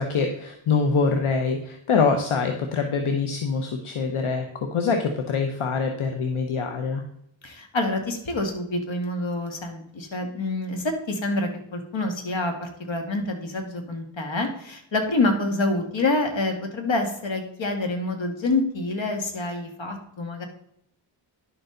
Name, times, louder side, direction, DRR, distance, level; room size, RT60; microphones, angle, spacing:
voice 1, 0.0-4.5 4.7-7.0, left 5 dB, 80° left, 5 dB, 1.0 m, -24 dB
voice 2, 7.4-20.4, left 2 dB, 65° left, 4 dB, 2.0 m, -27 dB
10.5 x 6.8 x 3.9 m, 0.76 s
cardioid pair, 65°, 49 cm